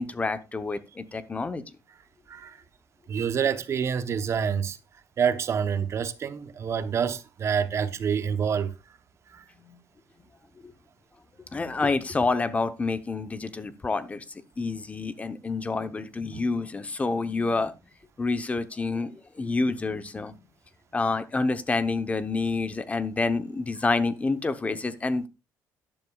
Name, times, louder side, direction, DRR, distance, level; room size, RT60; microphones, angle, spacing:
voice 1, 0.0-1.6 11.5-14.2 14.6-17.7 18.2-20.3 20.9-25.3, left 3 dB, 20° left, 0.8 m, -28 dB
voice 2, 3.1-4.8 5.2-8.7 9.3-9.4, right 7 dB, 40° right, 0.9 m, -27 dB
12.0 x 11.0 x 2.3 m
cardioid pair, 130°, 7 cm